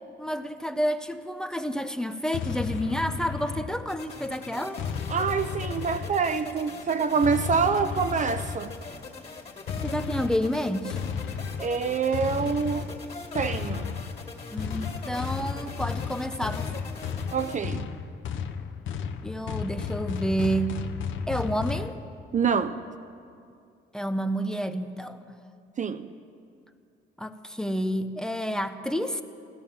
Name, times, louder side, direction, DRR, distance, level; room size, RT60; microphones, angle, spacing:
voice 1, 0.2-4.8 9.8-11.0 14.5-16.7 19.2-20.7 21.3-22.0 23.9-25.2 27.2-29.2, equal, 5° left, 0.7 m, -29 dB
sound 1, 2.3-4.1 4.8-6.5 7.2-8.9 9.7-21.9, left 6 dB, 75° left, 0.8 m, -34 dB
sound 2, 3.9-17.6, left 4 dB, 30° left, 2.3 m, -42 dB
voice 2, 5.1-8.7 11.6-13.0 13.3-14.0 17.3-17.9 22.3-22.8 25.8-26.1, right 5 dB, 40° right, 0.5 m, -26 dB
16.0 x 12.5 x 7.1 m
cardioid pair, 90°, 20 cm